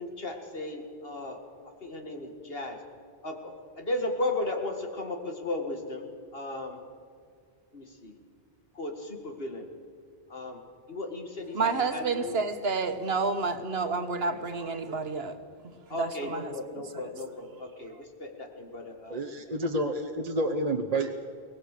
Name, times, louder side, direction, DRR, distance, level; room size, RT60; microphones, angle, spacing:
voice 1, 0.0-1.4 1.8-2.8 3.2-6.1 6.3-6.8 7.7-8.1 8.7-9.7 10.3-10.6 10.9-12.3 15.9-19.2, left 2 dB, 65° left, 4 dB, 2.2 m, -35 dB
voice 2, 11.5-15.4 15.9-16.5 16.9-17.0 17.9-18.0, right 4 dB, 70° right, 9 dB, 1.5 m, -29 dB
voice 3, 19.1-21.2, right 1 dB, 40° right, 5 dB, 1.0 m, -29 dB
23.5 x 18.5 x 6.7 m, 2.3 s
omnidirectional pair, 1.1 m